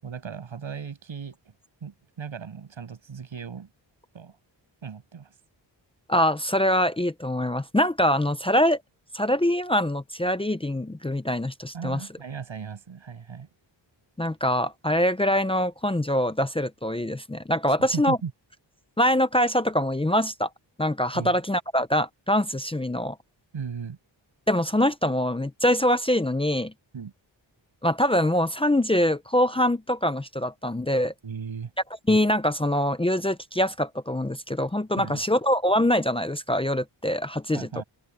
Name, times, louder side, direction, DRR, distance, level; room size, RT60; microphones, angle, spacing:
voice 1, 0.0-1.4 1.8-3.7 4.1-4.3 4.8-5.3 11.7-13.5 17.7-18.3 21.1-21.4 23.5-24.0 26.9-27.1 31.2-31.7 35.0-35.2 37.5-37.8, right 6 dB, 85° right, 6.9 m, -36 dB
voice 2, 6.1-8.8 9.1-12.0 14.2-18.2 19.0-20.5 20.8-23.2 24.5-26.7 27.8-31.1 32.1-37.8, left 1 dB, 10° left, 0.6 m, -24 dB
open air
wide cardioid pair, 155°, 45 cm